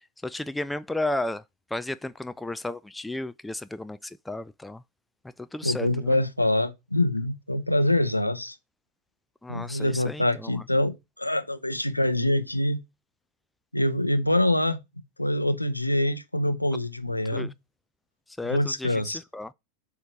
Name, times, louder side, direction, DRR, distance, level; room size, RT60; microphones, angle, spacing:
voice 1, 0.0-1.4 1.7-4.8 5.4-6.2 9.4-10.6 17.3-17.5 18.4-19.5, left 2 dB, 5° left, 0.3 m, -33 dB
voice 2, 5.6-8.6 9.5-12.8 13.7-14.8 15.2-17.5 18.5-19.2, left 1 dB, 85° left, 0.7 m, -25 dB
7.7 x 2.9 x 4.9 m
figure-of-eight pair, 90°, 0 cm